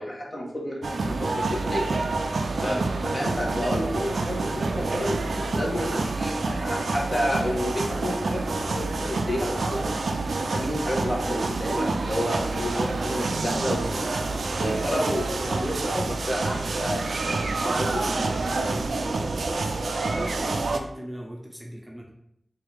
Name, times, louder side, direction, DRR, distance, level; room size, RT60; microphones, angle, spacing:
voice 1, 0.0-1.9 2.6-2.8 3.0-9.8 10.5-18.0, equal, 40° left, -2 dB, 1.2 m, -30 dB
sound 1, 0.8-20.8, right 3 dB, 90° right, 0.3 m, -28 dB
voice 2, 18.6-19.3 20.0-22.1, equal, 10° right, -1 dB, 0.7 m, -38 dB
4.5 x 2.5 x 3.4 m, 0.75 s
cardioid pair, 50°, 0 cm